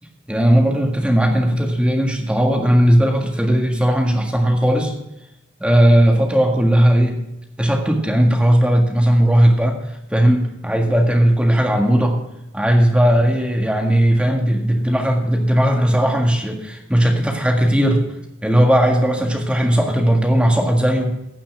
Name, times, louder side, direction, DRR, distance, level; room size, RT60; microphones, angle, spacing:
voice 1, 0.3-4.9 5.6-7.2 7.6-9.8 10.1-12.2 12.5-18.0 18.4-21.1, equal, 5° right, 1 dB, 1.7 m, -17 dB
15.5 x 5.9 x 6.0 m, 0.88 s
head